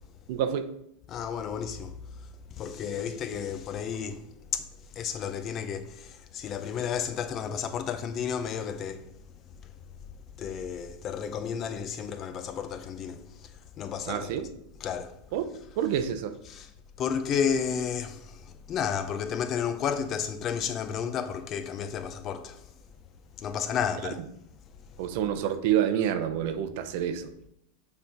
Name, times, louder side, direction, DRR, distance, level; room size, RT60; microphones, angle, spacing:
voice 1, 0.3-0.7 14.1-14.5 15.3-16.3 25.0-27.3, right 9 dB, 65° right, 0.7 m, -28 dB
voice 2, 1.1-1.9 2.6-4.2 4.5-4.7 4.9-9.1 10.4-13.2 13.8-14.3 14.8-15.1 16.5-16.7 17.0-22.6 23.4-24.2, left 7 dB, 40° left, 0.7 m, -32 dB
6.7 x 3.5 x 5.7 m
hypercardioid pair, 115°, 0 cm